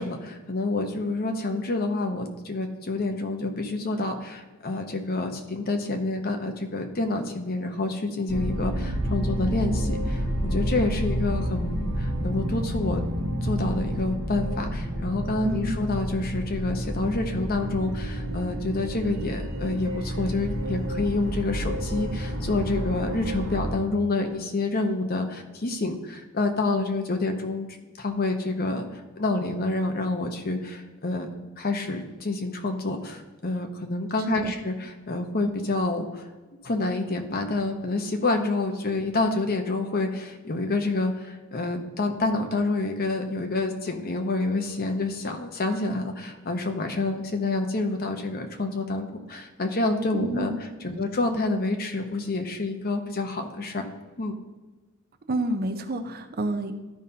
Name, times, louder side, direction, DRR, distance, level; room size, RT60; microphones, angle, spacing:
voice 1, 0.0-13.0 13.4-27.7 28.0-31.3 31.6-36.2 36.6-50.5 50.8-53.9 54.2-54.4, left 2 dB, 45° left, 4 dB, 0.9 m, -28 dB
sound 1, 8.3-23.7, equal, 65° right, 1.4 m, -29 dB
voice 2, 15.4-15.8 34.3-34.5 50.2-50.6 55.3-56.7, right 1 dB, 45° right, 7 dB, 0.6 m, -29 dB
12.5 x 5.4 x 2.8 m, 1.2 s
head